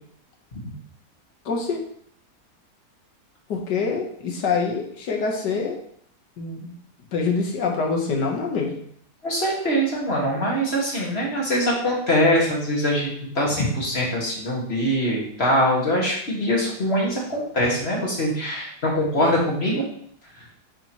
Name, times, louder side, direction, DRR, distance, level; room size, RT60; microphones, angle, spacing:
voice 1, 1.5-1.8 3.5-5.8 6.4-6.7 7.1-8.7, left 4 dB, 90° left, 1 dB, 1.8 m, -25 dB
voice 2, 9.2-13.1 13.4-19.8, equal, 40° left, -3 dB, 2.0 m, -23 dB
9.4 x 4.3 x 3.0 m, 0.65 s
omnidirectional pair, 1.8 m